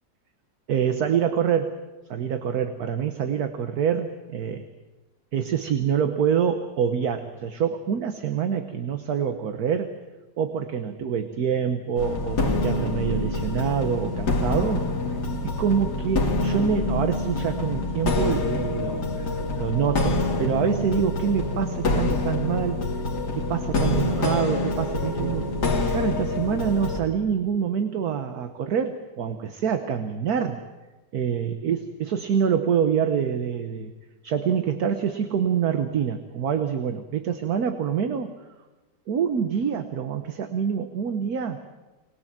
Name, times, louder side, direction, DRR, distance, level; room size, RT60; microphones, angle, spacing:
voice 1, 0.7-1.8 2.1-4.6 5.3-9.9 10.4-14.9 15.4-22.8 23.3-25.5 25.8-30.6 31.1-33.9 34.2-38.3 39.1-41.6, right 7 dB, 60° right, 8 dB, 1.5 m, -26 dB
sound 1, 12.0-27.0, left 2 dB, 65° left, 2.5 m, -26 dB
24.0 x 20.0 x 7.5 m, 1.1 s
omnidirectional pair, 1.9 m